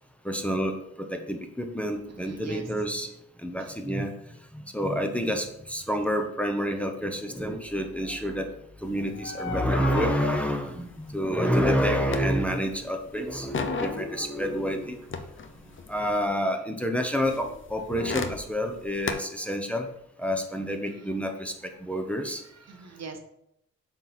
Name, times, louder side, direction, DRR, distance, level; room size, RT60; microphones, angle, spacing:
voice 1, 0.2-3.1 3.4-4.1 4.7-8.5 8.8-15.0 15.9-19.9 20.2-21.5 21.8-22.4, equal, 5° left, 4 dB, 0.9 m, -28 dB
voice 2, 2.1-2.7 3.6-3.8 15.5-15.8 21.0-21.3 22.2-23.2, right 4 dB, 60° right, 5 dB, 1.0 m, -45 dB
Squeaky creaking door, 8.9-12.8 13.1-16.3 17.3-19.1, left 4 dB, 40° left, 0.7 m, -35 dB
6.8 x 4.1 x 4.3 m, 0.77 s
cardioid pair, 80°, 29 cm